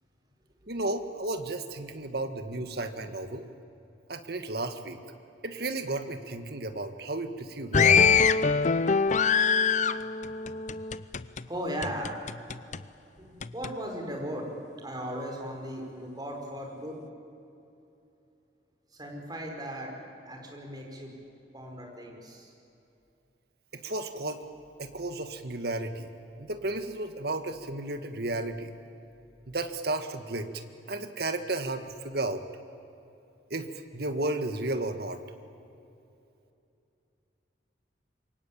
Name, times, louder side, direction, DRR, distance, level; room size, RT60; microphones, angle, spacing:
voice 1, 0.7-3.5 4.1-5.0 5.4-8.2 23.8-24.4 24.8-26.1 26.4-28.7 29.5-30.5 30.9-32.4 33.5-33.7 33.9-35.2, right 2 dB, 60° right, 8 dB, 1.9 m, -33 dB
sound 1, 7.7-11.4 11.8-12.8 13.4-13.7, left 6 dB, 40° left, 0.6 m, -24 dB
voice 2, 11.5-12.3 13.2-14.5 14.8-17.0 18.9-19.9 20.2-21.1 21.5-22.5, equal, 20° right, 1 dB, 5.1 m, -37 dB
27.0 x 23.5 x 8.9 m, 2.8 s
head